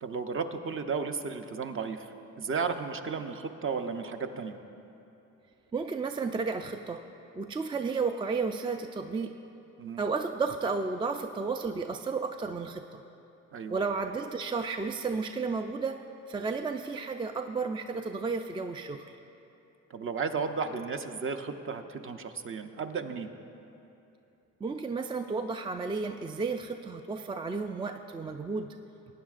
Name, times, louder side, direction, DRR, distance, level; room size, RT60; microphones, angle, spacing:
voice 1, 0.0-4.6 9.8-10.0 13.5-13.8 19.9-23.3, right 5 dB, 45° right, 7 dB, 0.7 m, -34 dB
voice 2, 5.7-7.0 7.3-9.3 10.0-13.0 13.7-16.0 16.3-19.0 24.6-28.7, right 4 dB, 15° right, 6 dB, 0.3 m, -32 dB
18.0 x 9.4 x 2.5 m, 2.9 s
cardioid pair, 90°, 30 cm